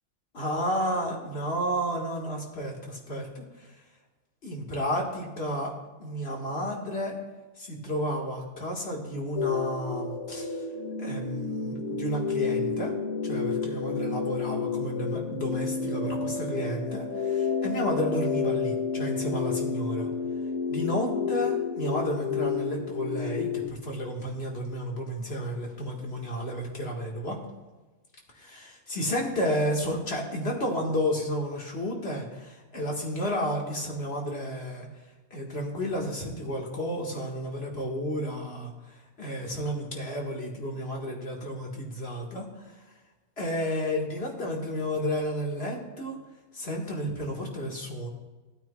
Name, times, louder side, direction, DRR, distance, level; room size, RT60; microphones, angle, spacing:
voice 1, 0.3-3.4 4.4-5.7 6.0-7.2 7.6-10.6 11.0-12.9 13.2-20.1 20.7-27.4 28.3-34.9 35.3-38.7 39.2-42.5 43.4-46.2 46.5-48.1, equal, 50° left, -1 dB, 2.0 m, -32 dB
sound 1, 9.4-23.7, left 5 dB, 65° left, 1.3 m, -30 dB
15.5 x 9.0 x 2.4 m, 1.2 s
omnidirectional pair, 1.4 m